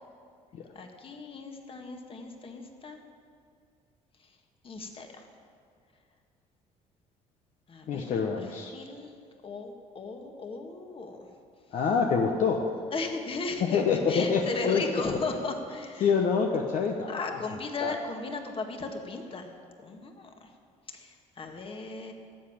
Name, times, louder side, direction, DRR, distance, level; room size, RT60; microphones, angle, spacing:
voice 1, 0.7-3.0 4.6-5.1 7.7-9.1 9.4-11.3 12.9-13.8 14.1-16.1 17.1-19.5 19.8-20.5 20.9-22.1, left 3 dB, 40° left, 4 dB, 1.7 m, -36 dB
voice 2, 7.9-8.7 11.7-12.6 13.6-15.0 16.0-17.4 17.8-17.9, left 5 dB, 60° left, 2 dB, 1.0 m, -26 dB
11.0 x 7.8 x 8.7 m, 2.2 s
supercardioid pair, 80°, 14 cm